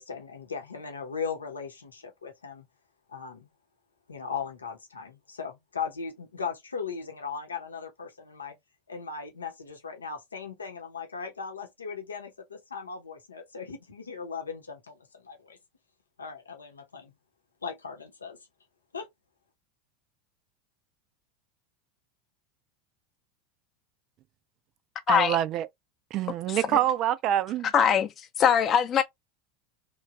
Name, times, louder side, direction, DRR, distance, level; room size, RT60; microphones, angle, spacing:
voice 1, 0.0-2.7 3.1-3.5 4.1-8.6 8.9-15.6 16.2-17.1 17.6-18.4 18.9-19.1, left 6 dB, 80° left, 0.8 m, -38 dB
voice 2, 25.1-25.7 26.1-27.7, right 12 dB, 45° right, 0.3 m, -26 dB
voice 3, 27.7-28.1 28.4-29.0, left 8 dB, 35° left, 0.6 m, -21 dB
3.1 x 2.4 x 2.4 m
figure-of-eight pair, 80°, 0 cm